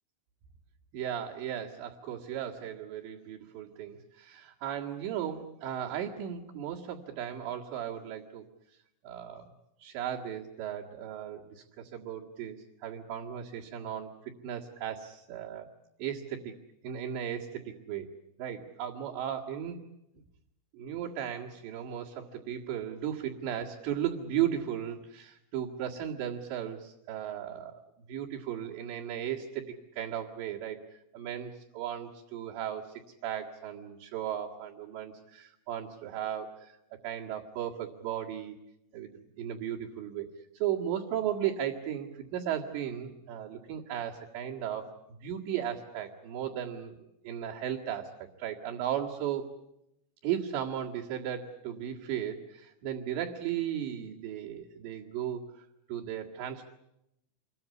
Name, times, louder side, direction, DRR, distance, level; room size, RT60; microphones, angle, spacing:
voice 1, 0.9-8.4 9.0-9.5 9.8-14.1 14.4-15.7 16.0-16.5 16.8-18.1 18.4-19.8 20.8-27.8 28.1-29.6 30.0-30.8 31.1-32.9 33.2-38.6 38.9-40.3 40.5-47.0 47.2-48.1 48.4-49.5 50.2-56.6, right 10 dB, 65° right, -4 dB, 4.0 m, -36 dB
27.5 x 22.5 x 8.4 m, 0.85 s
omnidirectional pair, 5.9 m